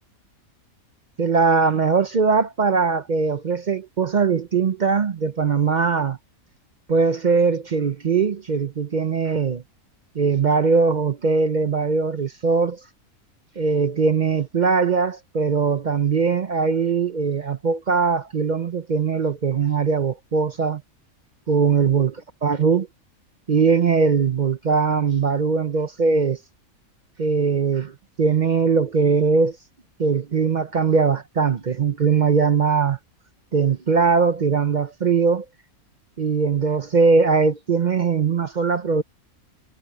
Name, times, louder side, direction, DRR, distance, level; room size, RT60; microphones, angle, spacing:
voice 1, 1.2-6.2 6.9-9.6 10.1-12.8 13.6-20.8 21.5-22.2 22.4-22.9 23.5-26.4 27.2-27.9 28.2-29.6 30.0-33.0 33.5-35.4 36.2-39.0, right 5 dB, 45° right, 0.6 m, -20 dB
omnidirectional pair, 1.5 m